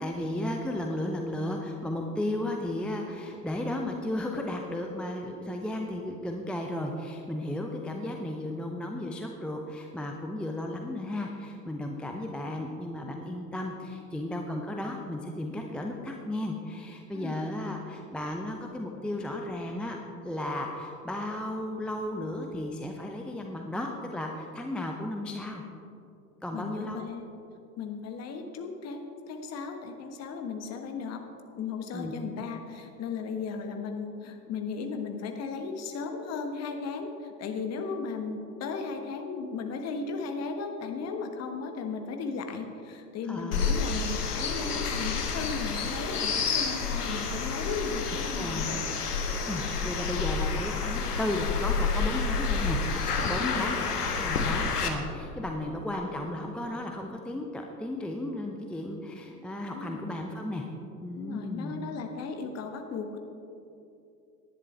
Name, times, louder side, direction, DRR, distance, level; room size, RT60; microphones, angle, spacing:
voice 1, 0.0-20.0 20.2-25.6 26.4-27.1 31.9-32.5 43.3-43.8 48.4-48.7 49.5-60.7 61.0-61.7, left 1 dB, ahead, 2 dB, 0.6 m, -34 dB
voice 2, 26.5-27.3 27.8-31.2 31.6-48.9 53.4-53.7 59.7-60.0 61.1-63.2, left 5 dB, 30° left, 5 dB, 1.4 m, -36 dB
sound 1, 43.5-54.9, left 5 dB, 70° left, 1.4 m, -29 dB
18.5 x 11.0 x 3.4 m, 2.7 s
figure-of-eight pair, 80°, 49 cm